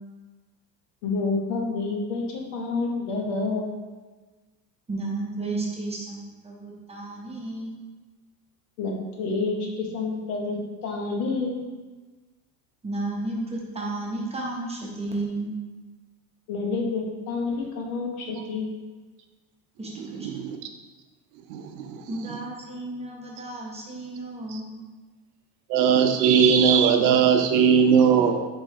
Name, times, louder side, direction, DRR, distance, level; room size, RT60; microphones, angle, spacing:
voice 1, 1.0-3.7 8.8-11.6 16.5-18.7, left 3 dB, 75° left, 0 dB, 1.0 m, -28 dB
voice 2, 4.9-7.8 12.8-15.5 19.8-20.3 22.1-24.8, right 2 dB, 15° right, -3 dB, 0.7 m, -33 dB
voice 3, 20.0-20.6 21.5-22.0 24.5-24.6 25.7-28.5, right 7 dB, 80° right, 6 dB, 0.6 m, -20 dB
3.8 x 3.1 x 2.7 m, 1.3 s
supercardioid pair, 100°, 50 cm